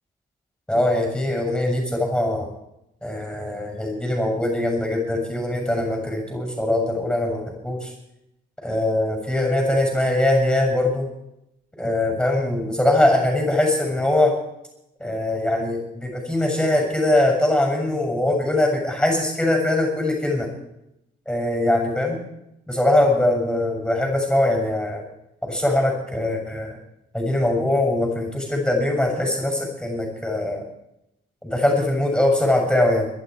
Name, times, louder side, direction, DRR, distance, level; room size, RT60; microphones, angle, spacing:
voice 1, 0.7-2.5 3.0-7.9 8.6-11.1 11.7-14.3 15.0-20.5 21.2-22.2 22.7-25.0 25.4-26.8 27.1-30.7 31.4-33.1, left 1 dB, 5° left, 2 dB, 6.9 m, -22 dB
22.0 x 12.0 x 4.8 m, 0.84 s
cardioid pair, 90°, 20 cm